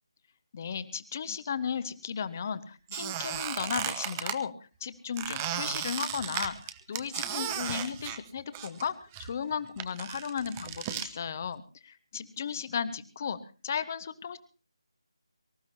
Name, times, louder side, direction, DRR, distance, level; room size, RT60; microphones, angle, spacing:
voice 1, 0.5-4.5 4.8-13.4 13.6-14.4, left 7 dB, 30° left, 12 dB, 1.3 m, -35 dB
Squeak, 2.9-4.4 5.2-8.9 9.1-11.1, right 10 dB, 15° right, 1.0 m, -35 dB
24.5 x 14.5 x 2.9 m, 0.36 s
figure-of-eight pair, 155°, 3 cm